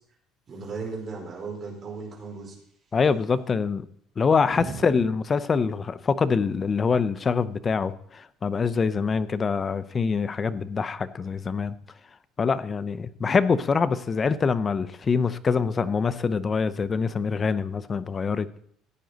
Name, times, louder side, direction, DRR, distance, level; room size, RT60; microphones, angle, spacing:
voice 1, 0.5-2.6 4.5-5.0, right 4 dB, 30° right, -1 dB, 3.7 m, -36 dB
voice 2, 2.9-3.9 4.2-11.7 12.4-18.6, left 5 dB, 25° left, 14 dB, 0.5 m, -25 dB
15.0 x 9.1 x 3.9 m, 0.65 s
cardioid pair, 160°, 0 cm